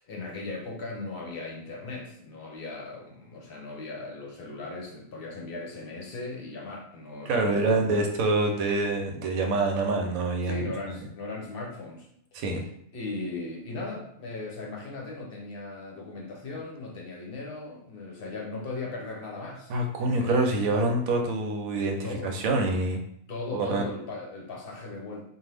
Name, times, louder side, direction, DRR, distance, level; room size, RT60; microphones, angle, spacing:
voice 1, 0.0-8.1 10.5-12.4 12.9-19.7 20.0-20.5 22.0-22.3 23.3-25.2, left 3 dB, 55° left, -1 dB, 0.7 m, -38 dB
voice 2, 7.3-10.6 12.3-12.6 19.7-23.0 23.5-23.8, right 2 dB, 85° right, 3 dB, 1.0 m, -26 dB
2.6 x 2.3 x 3.3 m, 0.71 s
omnidirectional pair, 1.4 m